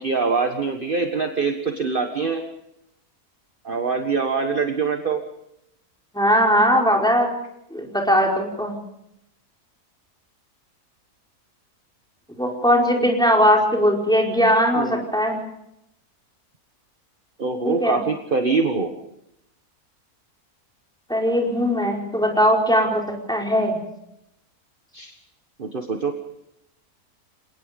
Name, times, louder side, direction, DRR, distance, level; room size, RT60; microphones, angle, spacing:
voice 1, 0.0-2.4 3.6-5.2 14.7-15.0 17.4-18.9 24.9-25.1 25.6-26.1, right 4 dB, 35° right, 5 dB, 1.6 m, -24 dB
voice 2, 6.1-7.3 7.7-8.7 12.3-15.4 17.6-18.0 21.1-23.0 23.3-23.8, equal, 5° left, 0 dB, 4.9 m, -19 dB
28.5 x 18.5 x 5.3 m, 0.80 s
omnidirectional pair, 1.6 m